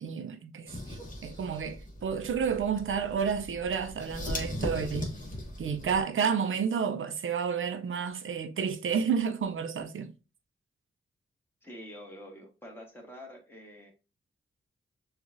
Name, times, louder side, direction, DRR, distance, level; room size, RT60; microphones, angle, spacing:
voice 1, 0.0-5.1 5.6-10.1, right 6 dB, 70° right, 0.6 m, -31 dB
sound 1, 0.7-6.0, left 1 dB, 40° left, 1.2 m, -39 dB
voice 2, 11.6-13.9, equal, 10° left, 1.5 m, -47 dB
6.4 x 2.5 x 2.6 m
wide cardioid pair, 95°, 21 cm